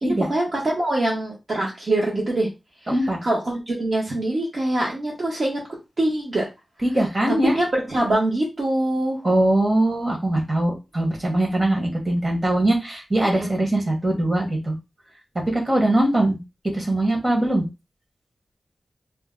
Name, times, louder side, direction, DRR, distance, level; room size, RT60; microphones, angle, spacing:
voice 1, 0.0-2.5 3.2-5.6 6.0-6.5 7.3-9.2 13.3-13.5, right 1 dB, 55° right, -5 dB, 0.9 m, -24 dB
voice 2, 2.9-3.2 6.8-7.5 9.2-14.7 15.5-16.4 16.7-17.6, right 1 dB, 30° right, -1 dB, 1.1 m, -21 dB
2.7 x 2.1 x 3.6 m, 0.25 s
wide cardioid pair, 120°, 0 cm